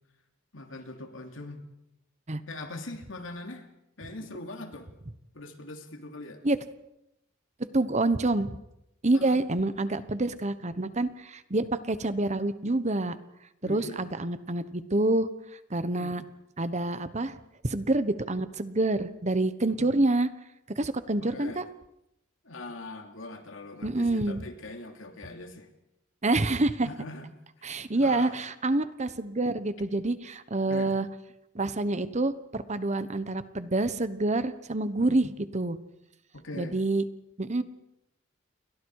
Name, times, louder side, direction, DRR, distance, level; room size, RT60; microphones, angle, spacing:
voice 1, 0.5-1.6 2.5-3.7 4.0-4.9 5.3-6.4 9.1-9.4 13.6-14.0 15.9-16.2 19.7-19.9 21.2-21.6 22.4-25.7 26.9-27.3 27.6-28.3 30.7-30.9 35.1-35.3 36.3-36.8, left 2 dB, 80° left, 5 dB, 2.9 m, -41 dB
voice 2, 7.7-8.6 9.0-13.2 13.7-15.3 15.7-16.2 16.6-17.4 17.6-20.3 20.8-21.6 23.8-24.4 26.2-26.9 27.6-31.1 31.5-35.8 36.6-37.0 37.4-37.6, right 2 dB, 35° right, 13 dB, 1.2 m, -27 dB
29.5 x 23.0 x 4.8 m, 0.86 s
head